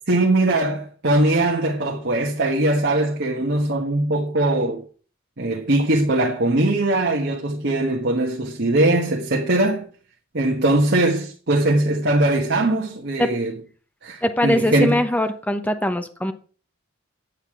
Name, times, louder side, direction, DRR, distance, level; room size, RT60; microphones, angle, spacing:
voice 1, 0.0-4.8 5.4-9.9 10.3-13.5 14.0-15.0, right 1 dB, 55° right, 1.4 m, -21 dB
voice 2, 14.2-16.3, left 1 dB, 10° left, 1.0 m, -22 dB
9.4 x 8.2 x 4.8 m
head